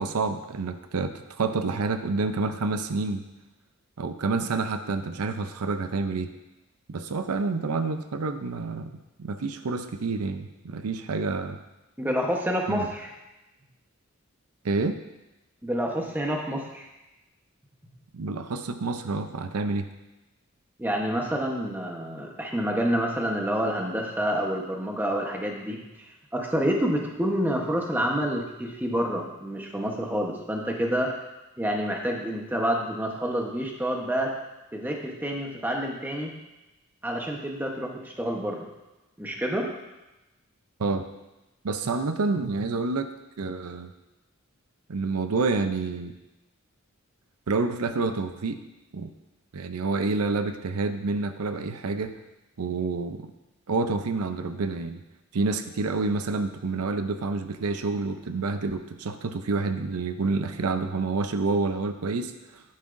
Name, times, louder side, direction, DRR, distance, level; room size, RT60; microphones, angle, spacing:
voice 1, 0.0-3.3 4.0-6.3 6.9-8.9 9.2-11.6 12.7-12.9 14.6-15.0 18.1-19.9 40.8-41.0 41.6-43.1 43.4-43.9 44.9-46.1 47.5-48.6 48.9-49.1 49.5-52.2 52.6-53.3 53.7-55.0 55.3-62.6, right 3 dB, 85° right, 9 dB, 0.6 m, -28 dB
voice 2, 12.0-13.1 15.6-16.9 20.8-25.8 26.3-31.2 31.6-34.4 34.7-36.3 37.0-38.7 39.2-39.7, equal, 10° right, 0 dB, 1.0 m, -28 dB
11.0 x 9.6 x 2.6 m, 1.0 s
head